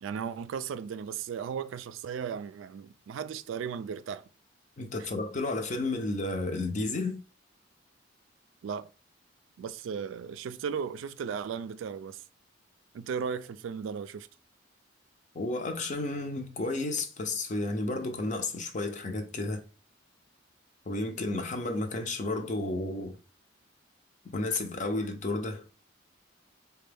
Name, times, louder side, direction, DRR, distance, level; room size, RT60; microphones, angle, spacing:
voice 1, 0.0-4.2 8.6-8.9 9.6-12.2 12.9-14.3, right 7 dB, 80° right, 0.3 m, -36 dB
voice 2, 4.8-7.2 15.3-19.6 20.9-23.2 24.2-25.6, left 2 dB, 40° left, 0.6 m, -32 dB
4.3 x 2.2 x 3.3 m
head